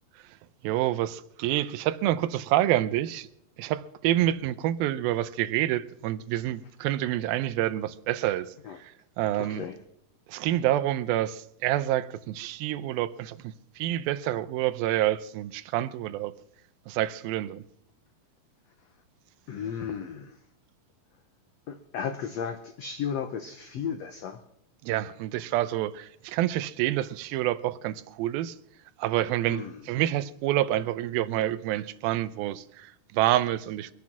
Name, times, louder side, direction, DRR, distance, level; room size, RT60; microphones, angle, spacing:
voice 1, 0.6-3.3 3.6-8.5 8.8-9.6 10.3-16.3 16.9-17.6 24.8-28.6 29.0-33.9, right 13 dB, 85° right, 2.5 m, -28 dB
voice 2, 9.4-9.8 19.5-20.4 21.7-24.4 29.5-29.8, left 7 dB, 90° left, 1.4 m, -34 dB
24.0 x 8.3 x 6.0 m
omnidirectional pair, 4.2 m